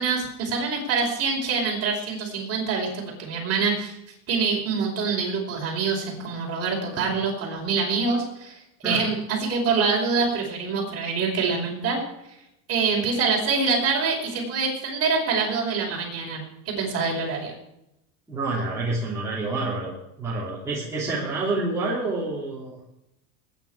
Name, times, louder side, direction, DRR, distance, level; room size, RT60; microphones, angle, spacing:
voice 1, 0.0-4.0 4.3-12.0 12.7-17.5, right 4 dB, 30° right, -1 dB, 5.1 m, -25 dB
voice 2, 8.8-9.2 18.3-22.8, right 2 dB, 5° right, -8 dB, 3.2 m, -28 dB
20.5 x 10.0 x 4.8 m, 0.85 s
supercardioid pair, 160°, 48 cm